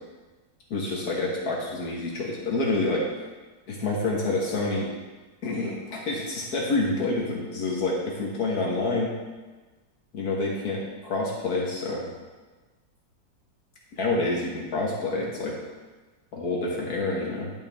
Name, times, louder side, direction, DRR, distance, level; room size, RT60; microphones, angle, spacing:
voice 1, 0.7-3.0 3.7-4.9 5.4-9.1 10.1-12.1 14.0-15.5 16.3-17.5, left 2 dB, 55° left, -3 dB, 1.7 m, -27 dB
11.0 x 5.4 x 3.4 m, 1.3 s
omnidirectional pair, 2.0 m